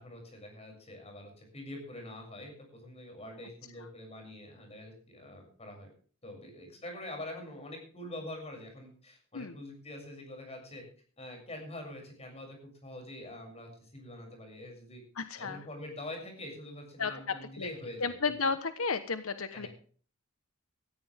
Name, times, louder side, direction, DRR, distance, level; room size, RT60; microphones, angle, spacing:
voice 1, 0.0-5.9 6.2-10.8 11.2-15.0 15.4-18.1 19.5-19.7, left 1 dB, 30° left, 3 dB, 7.0 m, -45 dB
voice 2, 15.2-15.6 17.0-17.7 18.0-19.7, left 4 dB, 90° left, 11 dB, 1.1 m, -33 dB
16.5 x 15.0 x 3.5 m, 0.43 s
head